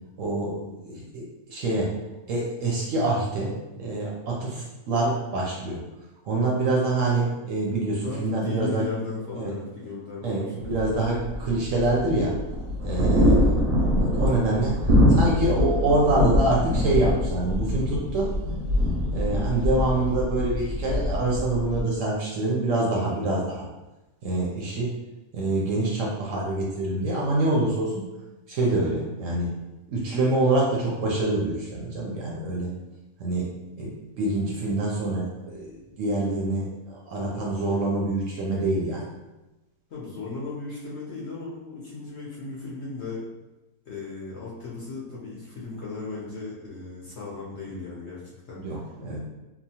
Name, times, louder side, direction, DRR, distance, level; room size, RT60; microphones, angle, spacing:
voice 1, 0.2-1.9 2.3-3.5 3.8-5.8 6.2-8.9 9.3-9.5 10.2-12.4 12.8-13.6 14.0-18.3 19.1-23.7 24.2-24.9 25.3-28.0 28.5-29.6 29.9-32.7 33.2-33.5 33.8-39.1 48.6-49.2, right 2 dB, 70° right, -3 dB, 0.8 m, -26 dB
voice 2, 8.0-10.7 13.2-13.5 39.9-43.2 43.9-48.9, left 3 dB, 60° left, -6 dB, 0.7 m, -36 dB
sound 1, 10.6-21.8, left 1 dB, 85° right, 1.1 m, -24 dB
2.9 x 2.1 x 2.7 m, 1.0 s
omnidirectional pair, 1.6 m